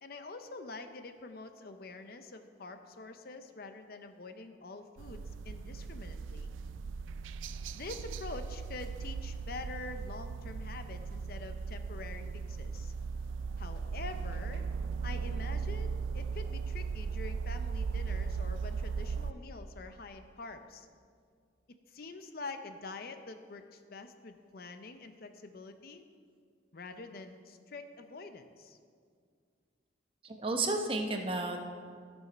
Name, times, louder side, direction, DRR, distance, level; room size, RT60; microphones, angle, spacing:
voice 1, 0.0-6.5 7.7-12.9 13.6-14.6 15.0-20.9 21.9-26.0 26.7-28.8, left 3 dB, 50° left, 8 dB, 0.6 m, -46 dB
sound 1, 5.0-19.3, right 5 dB, 85° right, 0.3 m, -37 dB
voice 2, 30.2-31.6, right 2 dB, 30° right, 4 dB, 0.8 m, -32 dB
13.5 x 6.3 x 5.3 m, 2.1 s
head